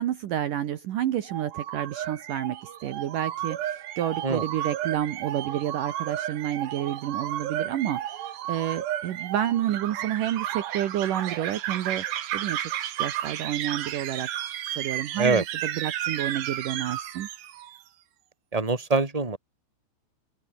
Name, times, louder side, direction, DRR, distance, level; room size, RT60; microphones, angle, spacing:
voice 1, 0.0-12.0 12.3-12.7 13.0-14.3 14.7-17.3, right 11 dB, 85° right, 1.8 m, -30 dB
sound 1, 1.3-17.8, right 12 dB, 60° right, 3.6 m, -33 dB
voice 2, 18.5-19.4, right 3 dB, 10° right, 2.6 m, -24 dB
open air
omnidirectional pair, 5.9 m